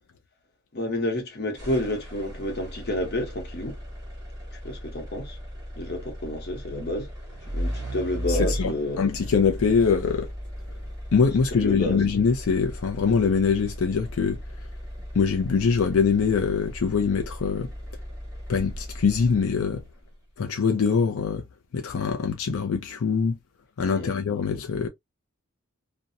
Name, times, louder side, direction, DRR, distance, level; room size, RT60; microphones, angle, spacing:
voice 1, 0.7-3.8 4.6-5.4 5.8-7.1 7.5-9.1 11.5-12.0 23.9-24.1, left 1 dB, 50° left, 0.9 m, -30 dB
sound 1, 1.6-19.8, equal, 15° right, 0.9 m, -36 dB
voice 2, 8.3-10.3 11.1-14.4 15.1-17.7 18.5-19.8 20.4-21.4 21.7-23.4 23.8-24.9, left 5 dB, 85° left, 0.4 m, -23 dB
2.6 x 2.1 x 2.5 m
head